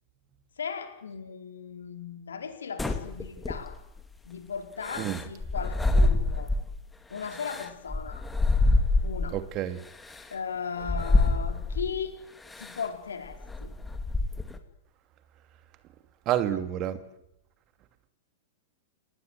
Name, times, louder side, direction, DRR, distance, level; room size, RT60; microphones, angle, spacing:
voice 1, 0.6-3.8 4.2-6.5 7.1-8.2 9.0-9.4 10.3-12.2 12.6-13.7 16.5-16.6, left 6 dB, 75° left, 6 dB, 4.4 m, -37 dB
sound 1, 2.8-4.0 4.8-6.8 7.2-9.4 10.1-10.2 10.8-12.0 12.5-12.8 13.3-14.6, left 2 dB, 10° left, 2.9 m, -26 dB
voice 2, 9.3-9.8 16.3-17.0, right 12 dB, 35° right, 10 dB, 2.5 m, -28 dB
29.5 x 19.5 x 8.2 m, 0.86 s
figure-of-eight pair, 105°, 0 cm